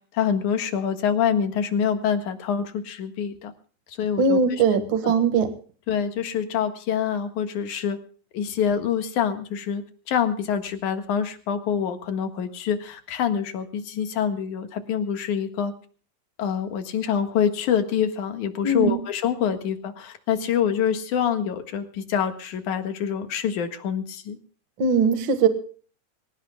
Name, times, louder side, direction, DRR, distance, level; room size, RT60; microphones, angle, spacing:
voice 1, 0.1-3.5 3.9-5.1 5.9-8.0 8.3-15.7 16.4-24.4, left 8 dB, 70° left, 7 dB, 3.0 m, -26 dB
voice 2, 4.2-5.5 18.6-19.0 24.8-25.5, right 5 dB, 45° right, 8 dB, 2.1 m, -20 dB
25.5 x 16.5 x 2.3 m, 0.43 s
omnidirectional pair, 3.7 m